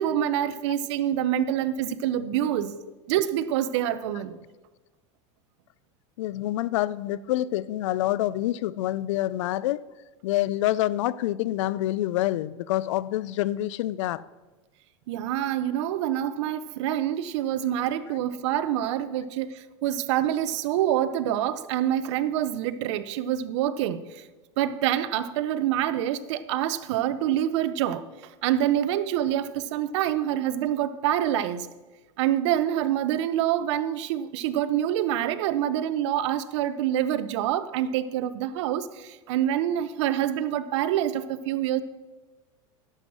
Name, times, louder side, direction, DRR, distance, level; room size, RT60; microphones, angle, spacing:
voice 1, 0.0-2.8 3.1-4.4 15.1-24.3 24.6-28.1 28.4-31.7 32.2-41.8, right 11 dB, 70° right, 0.7 m, -26 dB
voice 2, 6.2-9.8 10.2-14.3, left 14 dB, 75° left, 0.5 m, -27 dB
11.0 x 7.1 x 6.1 m
supercardioid pair, 140°, 16 cm